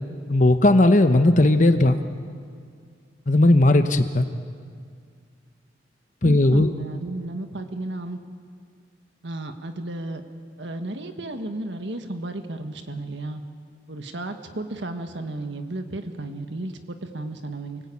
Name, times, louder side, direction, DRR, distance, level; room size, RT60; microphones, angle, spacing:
voice 1, 0.3-2.0 3.3-4.3 6.2-6.7, left 1 dB, 45° left, 8 dB, 1.0 m, -17 dB
voice 2, 6.2-8.2 9.2-10.2 10.6-13.4 13.9-17.8, right 2 dB, 85° right, 7 dB, 1.6 m, -33 dB
29.0 x 19.0 x 8.6 m, 2.1 s
head